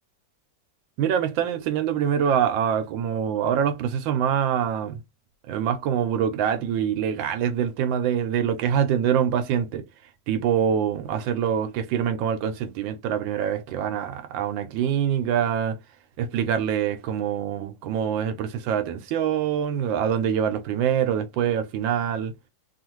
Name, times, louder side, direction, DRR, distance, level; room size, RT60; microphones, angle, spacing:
voice 1, 1.0-5.0 5.5-9.8 10.3-15.8 16.2-22.3, right 8 dB, 85° right, 1.3 m, -25 dB
3.3 x 2.4 x 3.0 m
omnidirectional pair, 2.0 m